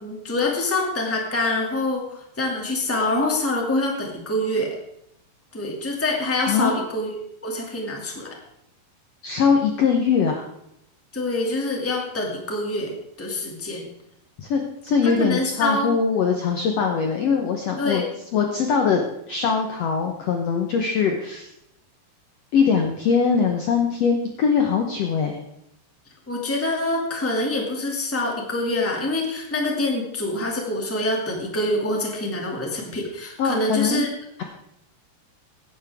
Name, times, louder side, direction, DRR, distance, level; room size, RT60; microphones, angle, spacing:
voice 1, 0.0-4.7 5.5-7.2 7.4-8.3 11.1-12.9 13.2-13.9 15.0-15.9 17.8-18.0 26.3-34.1, left 2 dB, 5° left, 0 dB, 1.3 m, -25 dB
voice 2, 9.2-10.5 14.4-18.0 18.3-21.5 22.5-25.4 33.4-34.0, left 6 dB, 80° left, 3 dB, 1.4 m, -22 dB
16.5 x 11.0 x 3.6 m, 0.78 s
omnidirectional pair, 4.5 m